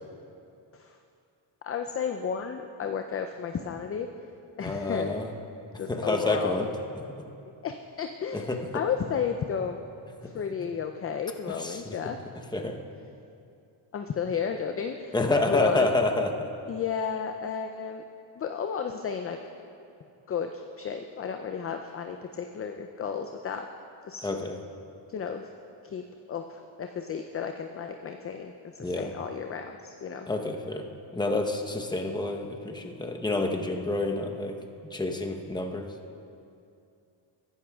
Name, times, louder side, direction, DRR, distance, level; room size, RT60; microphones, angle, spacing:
voice 1, 1.6-4.1 4.6-5.2 5.8-6.6 7.6-9.8 10.2-12.2 13.9-15.1 15.5-15.9 16.7-18.0 18.4-19.4 20.3-23.7 24.0-24.3 25.1-25.5 25.8-26.0 26.3-30.3, left 7 dB, 30° left, 5 dB, 0.4 m, -33 dB
voice 2, 4.6-5.3 5.9-6.7 8.3-8.6 11.6-12.0 12.5-12.8 15.1-16.5 24.2-24.6 28.8-29.1 30.3-30.9 31.1-34.5 34.9-35.9, left 2 dB, 10° left, 3 dB, 0.8 m, -28 dB
14.5 x 11.0 x 2.3 m, 2.6 s
cardioid pair, 85°, 47 cm